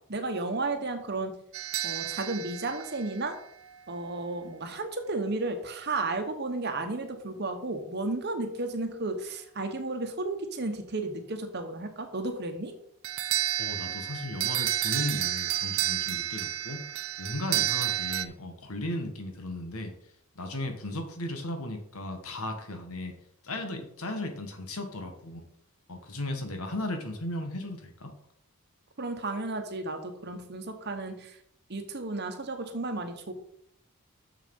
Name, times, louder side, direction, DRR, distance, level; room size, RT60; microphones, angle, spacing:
voice 1, 0.1-1.3 1.8-3.4 3.9-12.7 29.0-31.4 31.7-33.3, right 2 dB, 50° right, 6 dB, 1.1 m, -33 dB
sound 1, 1.5-3.8 13.0-18.3, right 12 dB, 65° right, 0.5 m, -31 dB
voice 2, 13.6-16.8 17.2-19.9 20.3-23.1 23.4-25.4 25.9-28.1, left 1 dB, 75° left, 6 dB, 1.5 m, -36 dB
6.7 x 6.5 x 5.3 m, 0.68 s
head